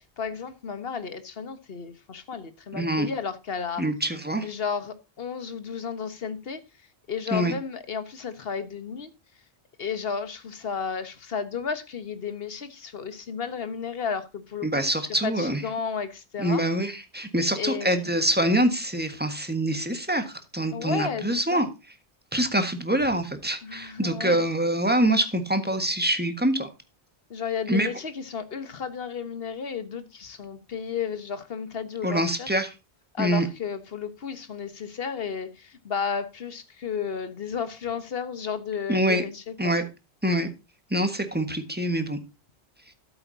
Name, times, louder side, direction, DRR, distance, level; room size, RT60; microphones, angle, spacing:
voice 1, 0.2-3.8 4.4-6.6 7.1-9.1 9.8-14.8 15.2-16.6 17.6-18.1 20.7-21.6 23.6-24.4 27.3-32.5 33.1-39.8, left 6 dB, 60° left, 1.4 m, -33 dB
voice 2, 2.7-3.1 3.8-4.5 7.3-7.5 14.6-15.6 16.4-21.7 22.3-26.7 27.7-27.9 32.0-32.7 33.2-33.5 38.9-39.2 39.6-39.8 40.2-40.5 40.9-42.2, right 1 dB, 10° right, 1.5 m, -25 dB
12.5 x 8.2 x 2.7 m
omnidirectional pair, 1.2 m